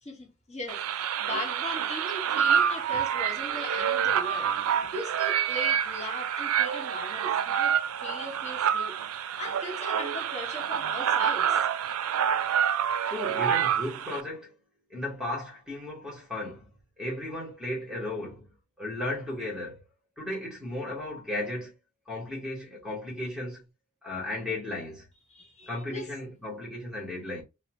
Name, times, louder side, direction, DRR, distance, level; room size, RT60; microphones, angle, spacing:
voice 1, 0.0-11.7 25.3-26.1, left 1 dB, 30° left, 1.1 m, -39 dB
sound 1, 0.7-14.2, right 8 dB, 80° right, 0.3 m, -27 dB
voice 2, 11.9-12.3 13.0-14.5 14.9-16.7 17.0-19.8 20.2-21.7 22.1-23.6 24.0-25.1 25.7-27.4, left 1 dB, 5° right, 1.1 m, -35 dB
2.8 x 2.0 x 2.9 m
head